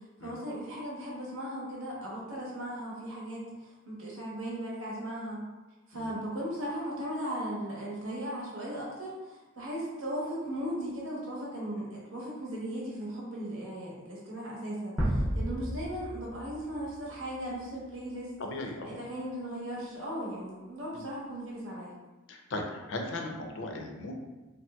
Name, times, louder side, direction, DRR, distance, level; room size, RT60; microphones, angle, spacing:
voice 1, 0.2-5.4 5.9-18.3 18.8-21.9, equal, 90° right, -5 dB, 1.0 m, -37 dB
sound 1, 15.0-17.9, equal, 5° right, 0.4 m, -33 dB
voice 2, 18.4-19.0 20.9-21.0 22.3-24.1, left 2 dB, 65° left, 3 dB, 0.4 m, -37 dB
3.2 x 2.7 x 2.2 m, 1.2 s
head